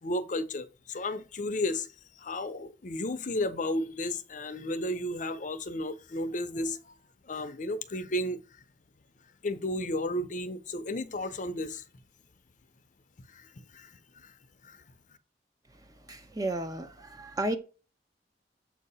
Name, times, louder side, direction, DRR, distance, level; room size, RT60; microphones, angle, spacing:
voice 1, 0.0-1.9 2.2-7.0 7.3-8.4 9.4-11.8 13.3-13.5 13.7-13.9 14.2-14.3 14.6-14.8, left 1 dB, 45° left, 0.6 m, -33 dB
voice 2, 16.1-17.6, right 1 dB, 20° right, 0.6 m, -33 dB
7.3 x 2.8 x 5.4 m
head